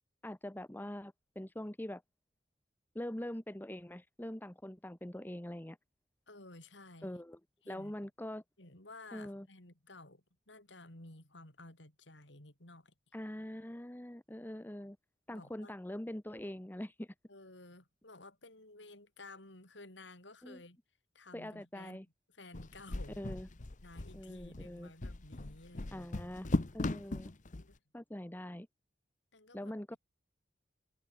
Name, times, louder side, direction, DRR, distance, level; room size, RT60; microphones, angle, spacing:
voice 1, 0.2-2.0 2.9-5.8 7.0-7.4 7.7-8.4 9.1-9.5 13.1-15.0 15.3-17.1 20.4-20.6 21.3-22.1 23.2-23.5 24.1-24.9 25.9-26.5 26.7-27.3 27.9-28.7 29.5-30.0, left 1 dB, 10° left, 1.0 m, -43 dB
voice 2, 6.3-7.2 7.6-7.9 8.6-12.9 15.3-15.7 17.3-20.8 21.1-22.0 22.3-23.3 23.8-26.1 27.6-27.8 29.3-29.8, left 2 dB, 70° left, 5.9 m, -54 dB
sound 1, 22.5-27.6, left 2 dB, 45° left, 0.9 m, -38 dB
head